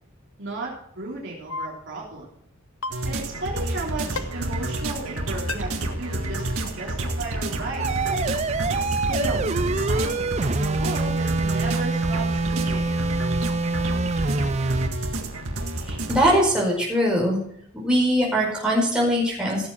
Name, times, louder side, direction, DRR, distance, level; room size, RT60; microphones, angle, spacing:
voice 1, 0.4-2.3 3.0-8.4 8.8-12.9, right 2 dB, 55° right, -3 dB, 3.4 m, -34 dB
sound 1, 1.5-1.7 2.8-3.0 4.1-4.2 5.5-5.6, left 3 dB, 75° left, 1.1 m, -29 dB
sound 2, 2.9-16.4, right 1 dB, 70° right, 1.8 m, -29 dB
sound 3, 7.8-14.9, right 3 dB, 30° right, 0.5 m, -26 dB
voice 2, 15.9-17.4 17.7-19.7, equal, 5° right, -4 dB, 5.0 m, -21 dB
17.0 x 7.5 x 4.6 m, 0.67 s
head